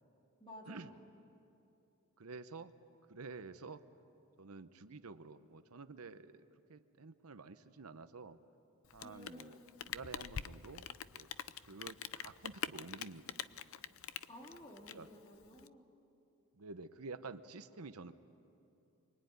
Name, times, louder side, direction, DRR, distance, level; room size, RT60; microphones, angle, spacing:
voice 1, 0.4-1.0 9.0-9.7 14.3-15.8, left 1 dB, 20° left, 0 dB, 3.1 m, -54 dB
voice 2, 2.2-2.7 3.1-3.8 4.4-8.4 8.9-9.6 9.8-11.3 11.6-13.2 14.9-15.1 16.5-18.1, right 4 dB, 85° right, 11 dB, 0.9 m, -50 dB
Rain, 8.8-15.7, left 8 dB, 70° left, 0.6 m, -45 dB
24.5 x 24.5 x 9.5 m, 2.8 s
head